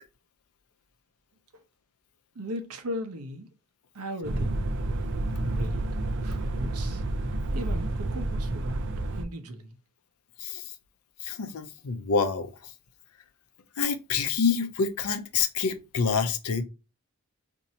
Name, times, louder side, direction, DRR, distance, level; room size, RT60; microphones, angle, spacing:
voice 1, 2.3-3.5 3.9-4.7 5.4-5.9 6.2-7.0 7.5-9.8, equal, 85° right, 0.8 m, -37 dB
sound 1, 4.2-9.2, right 2 dB, 55° right, 0.4 m, -29 dB
voice 2, 10.4-10.7 11.2-12.7 13.8-16.6, left 5 dB, 80° left, 0.5 m, -27 dB
2.7 x 2.7 x 4.1 m
head